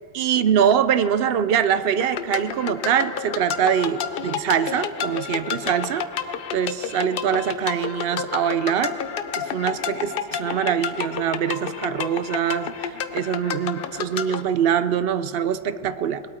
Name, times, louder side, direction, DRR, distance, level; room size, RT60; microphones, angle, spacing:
voice 1, 0.1-6.0 6.5-9.0 9.4-16.2, right 8 dB, 65° right, 12 dB, 0.7 m, -23 dB
sound 1, 2.0-14.4, left 7 dB, 60° left, 0.7 m, -30 dB
20.5 x 8.7 x 4.3 m, 2.7 s
omnidirectional pair, 1.2 m